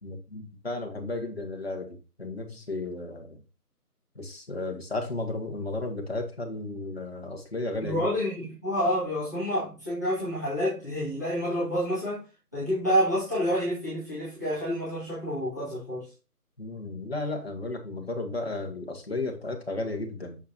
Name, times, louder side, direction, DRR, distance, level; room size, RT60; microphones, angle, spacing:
voice 1, 0.0-3.4 4.1-8.1 16.6-20.4, left 2 dB, 40° left, 1.7 m, -34 dB
voice 2, 7.8-12.2 12.5-16.1, equal, 10° left, 1.8 m, -28 dB
7.1 x 5.8 x 2.8 m
figure-of-eight pair, 180°, 47 cm